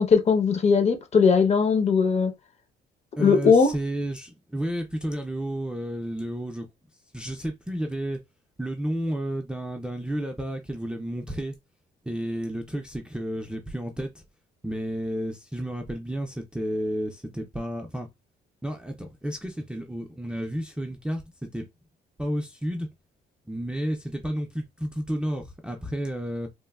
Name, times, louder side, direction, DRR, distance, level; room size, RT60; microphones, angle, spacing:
voice 1, 0.0-2.3 3.2-3.7, left 5 dB, 40° left, 0.6 m, -19 dB
voice 2, 3.2-6.7 7.1-8.2 8.6-11.5 12.1-14.1 14.6-18.1 18.6-21.7 22.2-22.9 23.5-26.5, equal, 5° right, 0.4 m, -31 dB
3.0 x 2.1 x 2.2 m
cardioid pair, 130°, 17 cm